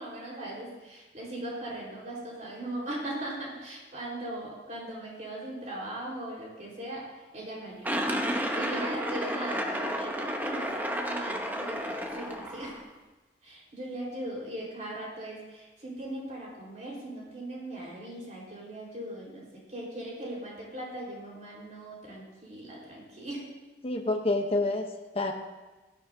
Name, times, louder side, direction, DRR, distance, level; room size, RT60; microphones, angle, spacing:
voice 1, 0.0-8.1 8.5-12.8 13.4-23.5, right 1 dB, 45° right, -4 dB, 4.1 m, -39 dB
sound 1, 7.8-12.8, equal, 10° right, 0.8 m, -31 dB
voice 2, 23.8-25.3, left 2 dB, 35° left, 3 dB, 0.8 m, -28 dB
17.5 x 12.5 x 2.7 m, 1.2 s
head